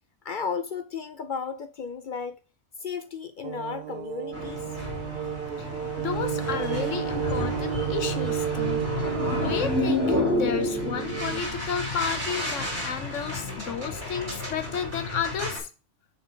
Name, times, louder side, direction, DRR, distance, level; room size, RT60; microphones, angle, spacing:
voice 1, 0.2-2.4 2.8-4.6, left 5 dB, 55° left, 0.6 m, -34 dB
sound 1, 3.4-11.4, right 9 dB, 60° right, 0.6 m, -31 dB
sound 2, 4.3-15.6, left 2 dB, 10° right, 3.0 m, -31 dB
voice 2, 6.0-9.1 9.4-15.7, left 6 dB, 85° left, 1.3 m, -32 dB
6.9 x 4.4 x 5.3 m
omnidirectional pair, 1.2 m